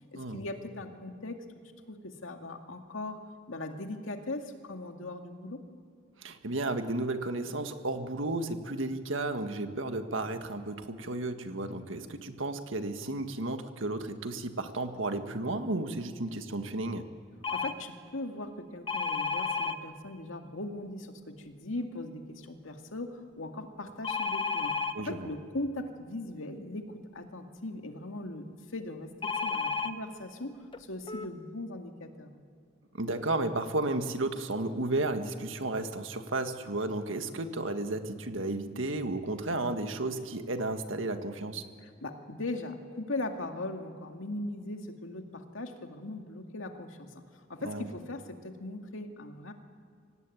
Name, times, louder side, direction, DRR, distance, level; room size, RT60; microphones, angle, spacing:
voice 1, 0.1-1.4 1.9-3.2 3.5-5.6 17.5-32.4 41.8-47.1 47.5-49.5, left 2 dB, 85° left, 4 dB, 2.2 m, -39 dB
voice 2, 6.2-17.1 24.9-25.3 32.9-41.6 47.6-47.9, right 2 dB, 70° right, 7 dB, 1.8 m, -33 dB
sound 1, 17.4-17.7 18.9-19.8 24.0-24.9 29.2-29.9 30.7-30.8 31.1-31.3, left 4 dB, 25° left, 1.0 m, -31 dB
25.0 x 17.5 x 9.3 m, 2.2 s
head